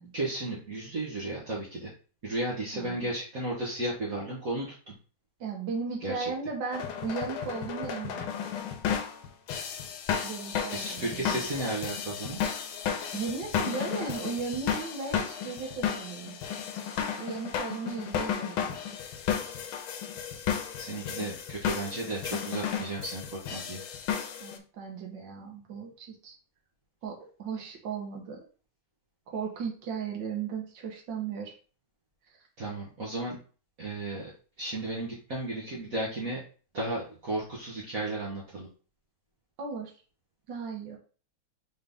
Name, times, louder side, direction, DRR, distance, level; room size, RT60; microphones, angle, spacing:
voice 1, 0.1-1.9 2.2-4.9 6.0-6.3 10.7-12.4 20.8-23.8 32.6-33.4 33.8-34.3 34.6-36.4 36.7-38.7, right 2 dB, 50° right, -5 dB, 1.4 m, -34 dB
voice 2, 2.7-3.1 5.4-8.3 10.2-11.5 13.1-16.4 17.2-18.8 24.4-26.3 27.0-28.4 29.3-31.5 39.6-39.9 40.5-41.0, right 5 dB, 65° right, 1 dB, 1.8 m, -36 dB
sound 1, 6.7-24.6, left 8 dB, 85° left, 1.5 m, -33 dB
4.1 x 3.7 x 3.5 m, 0.38 s
omnidirectional pair, 2.2 m